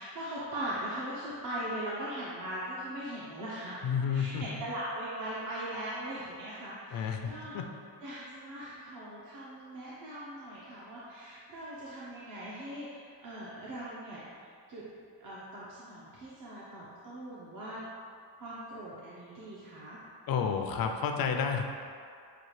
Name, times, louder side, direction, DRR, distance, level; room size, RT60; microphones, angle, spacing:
voice 1, 0.0-3.8 4.1-7.6 8.0-14.8 15.2-17.8 18.4-20.0, right 1 dB, 50° right, -8 dB, 0.8 m, -40 dB
voice 2, 3.8-4.4 6.9-7.2 7.5-7.6 20.3-21.8, left 6 dB, 55° left, 4 dB, 0.5 m, -30 dB
6.9 x 2.4 x 3.1 m, 2.3 s
cardioid pair, 105°, 42 cm